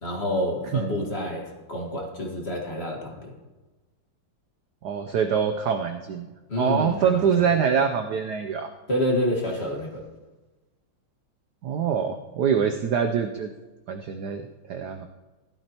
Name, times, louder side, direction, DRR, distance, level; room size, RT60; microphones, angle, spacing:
voice 1, 0.0-3.3 6.5-7.2 8.9-10.1, left 1 dB, 30° left, 0 dB, 1.6 m, -28 dB
voice 2, 4.8-6.3 6.6-8.7 11.6-13.5 13.9-14.4 14.7-15.1, right 7 dB, 75° right, 6 dB, 0.9 m, -24 dB
16.0 x 12.0 x 3.0 m, 1.2 s
omnidirectional pair, 2.4 m